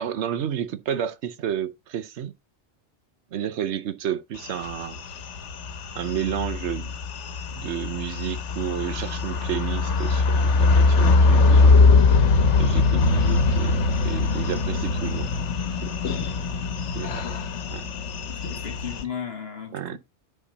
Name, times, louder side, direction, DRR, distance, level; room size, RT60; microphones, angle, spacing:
voice 1, 0.0-2.3 3.3-5.0 5.9-7.0 7.5-11.8 12.6-15.3 15.8-15.9 16.9-17.2 17.7-17.9 19.7-20.0, right 9 dB, 80° right, 1.1 m, -31 dB
sound 1, 4.4-19.0, left 3 dB, 85° left, 1.2 m, -22 dB
voice 2, 18.4-20.0, left 7 dB, 60° left, 1.8 m, -35 dB
10.0 x 4.5 x 4.0 m
omnidirectional pair, 1.2 m